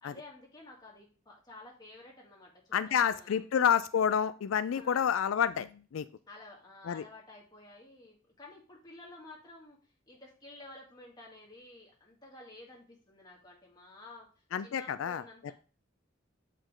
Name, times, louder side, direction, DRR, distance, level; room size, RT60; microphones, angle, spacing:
voice 1, 0.0-3.4 4.7-5.1 6.3-9.8 10.1-15.5, left 2 dB, 20° left, -2 dB, 2.2 m, -52 dB
voice 2, 2.7-6.0 6.9-7.0 14.5-15.2, left 8 dB, 90° left, 14 dB, 0.4 m, -29 dB
7.5 x 5.1 x 3.7 m, 0.37 s
head